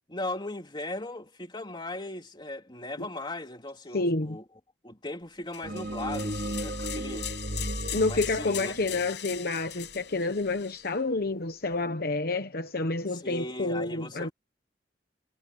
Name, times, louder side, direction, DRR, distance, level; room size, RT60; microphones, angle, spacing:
voice 1, 0.1-4.4 4.8-7.3 8.1-8.7 13.1-14.3, left 2 dB, 25° left, 3.3 m, -38 dB
voice 2, 3.9-4.4 7.9-14.3, left 3 dB, 60° left, 1.1 m, -29 dB
sound 1, 5.5-10.9, left 12 dB, 75° left, 6.4 m, -40 dB
sound 2, 5.6-10.0, right 1 dB, 50° right, 2.4 m, -35 dB
head